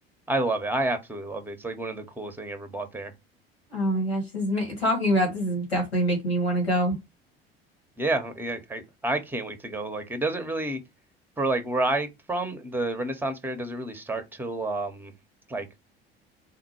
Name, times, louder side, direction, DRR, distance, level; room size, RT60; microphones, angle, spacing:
voice 1, 0.3-3.1 8.0-10.8 11.4-15.1 15.5-15.7, right 2 dB, 5° right, 0.8 m, -29 dB
voice 2, 3.7-7.0, equal, 90° left, 1.6 m, -25 dB
3.7 x 2.2 x 4.3 m
figure-of-eight pair, 65°, 30 cm